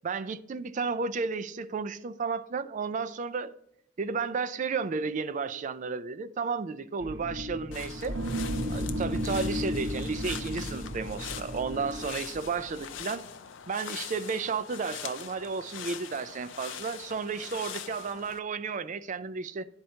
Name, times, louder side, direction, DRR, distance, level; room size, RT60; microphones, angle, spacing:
voice 1, 0.0-3.5 4.0-8.2 8.7-13.3 13.7-19.6, right 5 dB, 40° right, 0.4 m, -33 dB
sound 1, 7.0-13.0, equal, 80° right, 0.9 m, -34 dB
sound 2, 7.7-18.4, left 8 dB, 85° left, 0.5 m, -42 dB
10.5 x 4.3 x 2.8 m
head